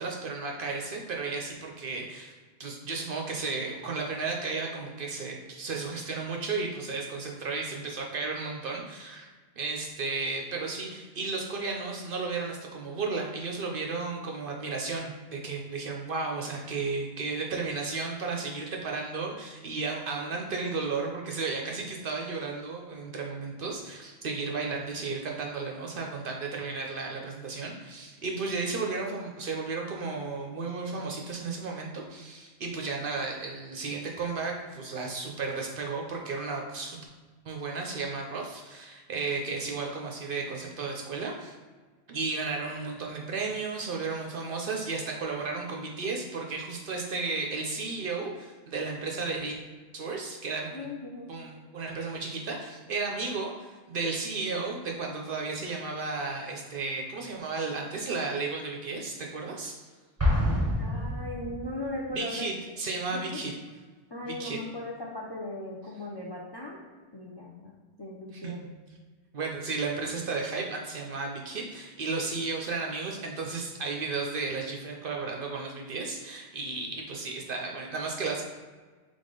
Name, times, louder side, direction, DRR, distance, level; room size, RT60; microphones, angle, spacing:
voice 1, 0.0-2.3 2.6-9.3 9.6-37.0 37.5-41.5 42.1-49.5 49.9-50.9 51.3-59.7 62.1-63.5 64.2-64.6 68.3-68.7 69.3-78.4, right 4 dB, 60° right, 1 dB, 0.6 m, -34 dB
voice 2, 50.7-51.3 60.8-62.5 63.1-63.4 64.1-66.8 67.1-68.6, left 1 dB, 40° left, -3 dB, 0.4 m, -38 dB
Explosion, 60.2-61.9, left 1 dB, 15° right, 0.7 m, -27 dB
3.6 x 3.4 x 3.8 m, 1.4 s
omnidirectional pair, 1.3 m